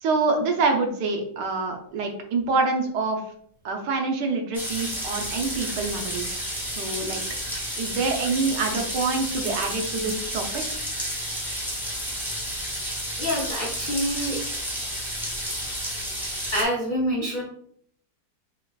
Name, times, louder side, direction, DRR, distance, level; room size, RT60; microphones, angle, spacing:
voice 1, 0.0-3.2 3.6-6.4 6.8-7.2 7.8-10.8, right 3 dB, 75° right, 3 dB, 1.3 m, -26 dB
sound 1, 4.5-16.6, equal, 5° right, 0.3 m, -31 dB
voice 2, 13.2-14.4 16.5-17.4, equal, 70° left, -3 dB, 0.4 m, -26 dB
5.5 x 2.4 x 2.3 m, 0.64 s
omnidirectional pair, 1.8 m